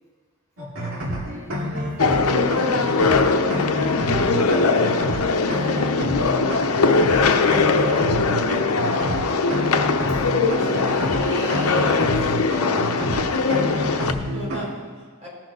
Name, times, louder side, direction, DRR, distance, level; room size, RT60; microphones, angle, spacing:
sound 1, 0.6-14.7, equal, 75° right, 2.5 m, -28 dB
voice 1, 0.9-5.0 5.5-6.3 6.6-7.1 8.3-8.7 9.5-12.5, equal, 15° left, -7 dB, 4.1 m, -38 dB
sound 2, 2.0-14.1, left 4 dB, 85° left, 0.8 m, -21 dB
voice 2, 13.4-15.3, equal, 30° right, -5 dB, 4.4 m, -37 dB
18.5 x 6.5 x 5.5 m, 1.5 s
head